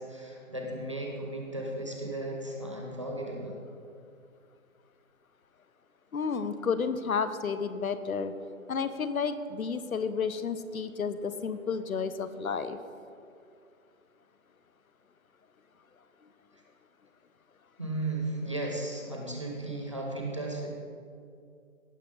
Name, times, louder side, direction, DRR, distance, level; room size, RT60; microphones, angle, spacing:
voice 1, 0.0-3.6 17.8-20.7, right 2 dB, 20° right, -1 dB, 0.9 m, -35 dB
voice 2, 6.1-8.3 8.7-12.8, left 5 dB, 85° left, 12 dB, 0.9 m, -31 dB
17.5 x 5.9 x 3.7 m, 2.4 s
hypercardioid pair, 175°, 41 cm